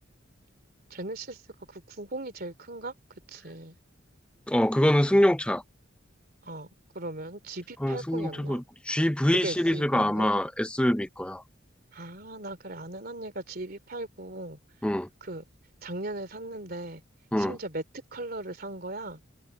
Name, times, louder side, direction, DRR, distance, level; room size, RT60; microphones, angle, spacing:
voice 1, 0.9-1.4 1.7-2.9 3.3-3.7 6.4-6.7 6.9-8.6 9.3-10.3 11.9-14.6 15.2-15.4 15.8-17.0 17.4-17.8 18.1-19.2, right 2 dB, 50° right, 2.9 m, -38 dB
voice 2, 4.5-5.6 7.8-11.4 14.8-15.1 17.3-17.6, left 1 dB, 5° left, 0.6 m, -25 dB
head